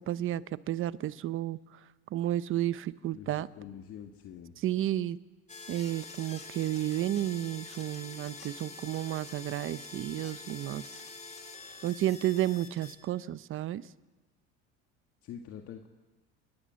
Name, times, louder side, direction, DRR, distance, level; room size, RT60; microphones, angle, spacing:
voice 1, 0.0-1.6 2.1-3.5 4.6-5.2 5.7-10.9 11.8-13.8, right 13 dB, 45° right, 16 dB, 0.9 m, -32 dB
voice 2, 3.1-4.5 15.2-15.9, left 9 dB, 50° left, 4 dB, 1.9 m, -45 dB
sound 1, 5.5-12.9, left 4 dB, 25° left, 3.0 m, -46 dB
28.0 x 20.5 x 7.7 m, 1.2 s
cardioid pair, 120°, 29 cm